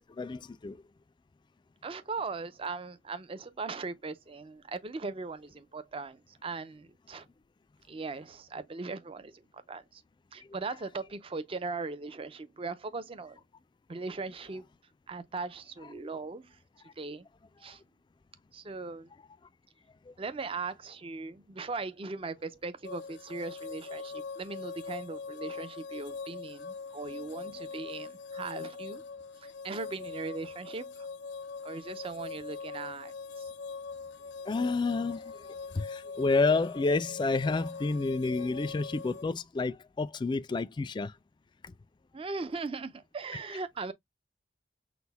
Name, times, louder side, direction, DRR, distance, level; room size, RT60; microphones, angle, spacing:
voice 1, 0.2-0.8 15.9-16.0 20.1-20.2 34.5-35.5 35.7-41.1 41.6-41.7, left 3 dB, 25° left, 0.3 m, -30 dB
voice 2, 1.8-7.3 7.9-9.4 9.7-10.0 10.3-13.4 13.9-14.7 15.1-16.6 17.0-17.3 17.6-17.8 18.5-19.1 20.2-29.0 29.4-30.9 31.6-33.5 42.1-43.9, right 3 dB, 30° right, 0.5 m, -39 dB
sound 1, 22.8-39.2, left 5 dB, 90° left, 0.6 m, -42 dB
6.0 x 2.1 x 3.4 m
head